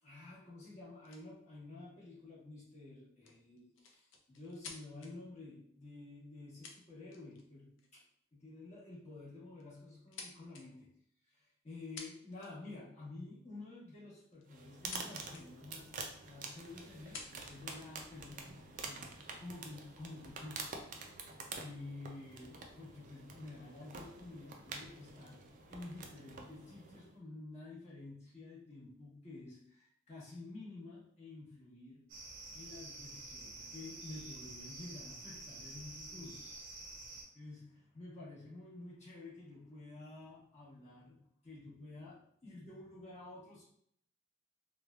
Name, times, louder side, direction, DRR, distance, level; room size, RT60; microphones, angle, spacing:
voice 1, 0.0-8.0 8.3-10.9 11.2-15.9 16.3-25.4 25.7-32.0 32.5-36.5 37.3-41.2 41.4-43.6, left 2 dB, 35° left, -7 dB, 1.1 m, -51 dB
sound 1, 1.0-1.2 3.2-5.1 6.2-6.3 6.6-7.4 7.8-8.0 9.0-9.2 9.6-10.6 11.7-11.8 12.0-12.7 14.2-15.0 15.3-15.4 16.1-16.2 16.9-17.6 18.3-19.0, left 5 dB, 75° left, 0.5 m, -51 dB
sound 2, 14.5-27.1, right 4 dB, 40° right, 0.3 m, -48 dB
sound 3, 32.1-37.2, right 2 dB, 85° right, 0.7 m, -49 dB
3.1 x 2.3 x 2.3 m, 0.66 s
head